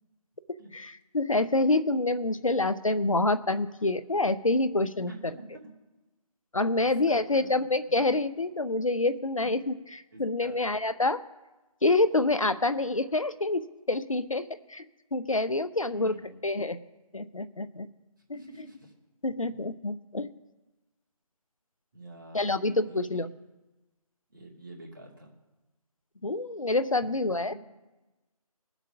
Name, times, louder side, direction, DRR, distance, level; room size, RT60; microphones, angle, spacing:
voice 1, 0.7-5.1 6.5-11.2 11.8-14.8 15.1-16.2 16.4-16.8 17.1-17.9 19.2-20.3 22.3-23.3 26.2-27.5, left 2 dB, 60° left, 12 dB, 0.7 m, -27 dB
voice 2, 5.1-5.7 6.8-7.6 7.9-8.0 9.4-9.5 10.1-10.6 15.9-16.4 18.3-18.9 21.9-23.3 24.3-25.3, right 1 dB, 35° right, -1 dB, 2.7 m, -47 dB
18.5 x 8.1 x 5.7 m, 1.1 s
figure-of-eight pair, 165°, 20 cm